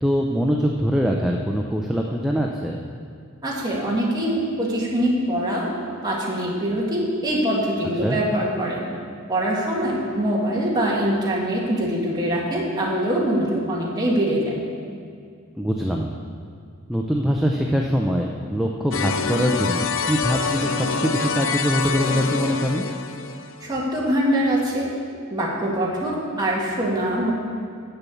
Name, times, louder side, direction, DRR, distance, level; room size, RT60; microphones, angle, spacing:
voice 1, 0.0-2.8 8.0-8.2 15.6-16.1 16.9-22.9, equal, ahead, -1 dB, 0.4 m, -23 dB
voice 2, 3.4-5.7 6.0-8.9 9.3-14.5 23.6-24.9 25.3-27.3, right 1 dB, 20° right, -5 dB, 1.8 m, -23 dB
sound 1, 18.9-23.8, left 5 dB, 60° left, 0.5 m, -26 dB
8.6 x 6.8 x 7.1 m, 2.3 s
head